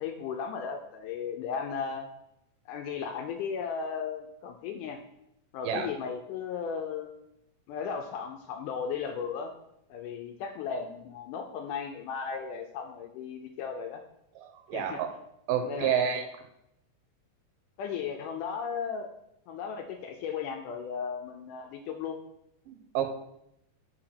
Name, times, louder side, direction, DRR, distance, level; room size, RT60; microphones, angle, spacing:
voice 1, 0.0-2.1 2.7-5.0 5.5-7.1 7.7-9.5 9.9-14.0 14.7-15.0 15.7-16.3 17.8-19.1 19.5-22.2, left 6 dB, 80° left, 4 dB, 1.9 m, -35 dB
voice 2, 14.4-15.1 15.5-16.2 22.7-23.2, right 9 dB, 80° right, 6 dB, 2.3 m, -29 dB
5.9 x 4.9 x 5.8 m, 0.80 s
omnidirectional pair, 4.1 m